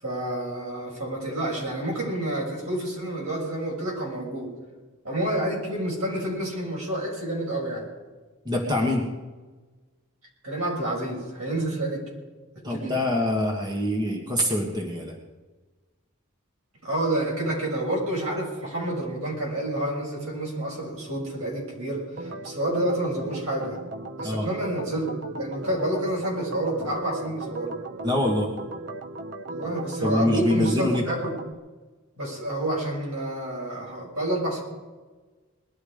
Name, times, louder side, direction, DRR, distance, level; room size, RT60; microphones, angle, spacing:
voice 1, 0.0-4.5 5.0-7.9 10.4-12.1 12.5-13.0 16.8-23.8 24.2-27.8 29.5-31.3 32.2-34.6, right 1 dB, 75° right, -2 dB, 6.4 m, -29 dB
voice 2, 8.4-9.1 12.6-15.2 24.2-24.5 28.0-28.5 30.0-31.0, left 1 dB, 20° right, 0 dB, 1.6 m, -25 dB
Organ, 22.2-31.5, right 2 dB, 50° right, 0.7 m, -37 dB
20.5 x 12.5 x 5.1 m, 1.3 s
head